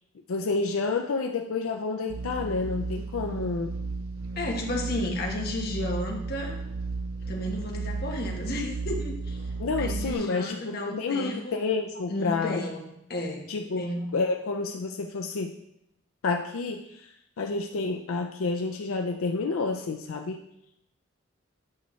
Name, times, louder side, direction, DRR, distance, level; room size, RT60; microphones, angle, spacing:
voice 1, 0.3-3.8 9.6-12.6 13.5-15.6 16.2-20.4, left 3 dB, 85° left, 4 dB, 0.5 m, -29 dB
sound 1, 2.1-10.1, right 3 dB, 85° right, 0.4 m, -34 dB
voice 2, 4.4-6.6 7.2-9.4 9.8-11.5 12.1-12.8 13.1-13.4 13.8-14.1, left 1 dB, 50° left, 0 dB, 1.2 m, -32 dB
8.6 x 5.5 x 3.1 m, 0.80 s
head